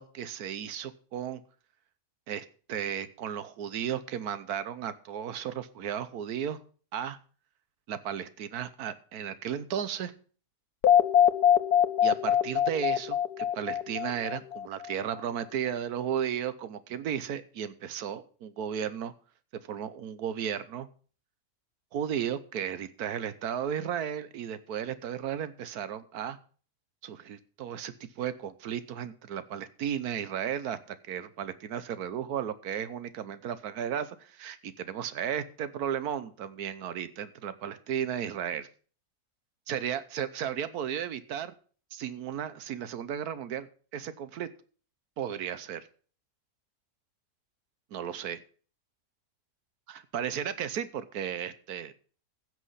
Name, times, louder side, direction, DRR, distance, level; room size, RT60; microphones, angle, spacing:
voice 1, 0.0-1.4 2.3-6.6 6.9-7.2 7.9-10.1 12.0-19.1 19.7-20.9 21.9-26.4 27.0-38.7 39.7-41.5 41.9-44.5 45.2-45.9 47.9-48.4 49.9-51.9, right 9 dB, 75° right, 14 dB, 1.4 m, -34 dB
sound 1, 10.8-14.8, left 9 dB, 90° left, 1.4 m, -23 dB
15.5 x 6.2 x 5.6 m, 0.42 s
omnidirectional pair, 1.6 m